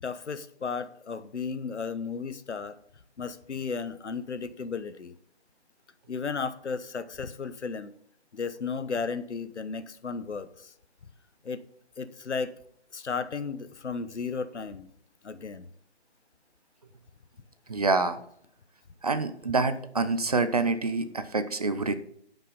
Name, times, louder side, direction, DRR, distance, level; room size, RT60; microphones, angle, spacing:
voice 1, 0.0-2.8 3.2-5.2 6.1-7.9 8.3-10.7 11.4-11.6 12.0-12.5 12.9-14.9 15.2-15.7, left 5 dB, 80° left, 12 dB, 1.1 m, -34 dB
voice 2, 17.7-18.2 19.0-22.0, right 3 dB, 35° right, 11 dB, 0.6 m, -26 dB
10.5 x 5.8 x 5.3 m, 0.67 s
figure-of-eight pair, 160°, 34 cm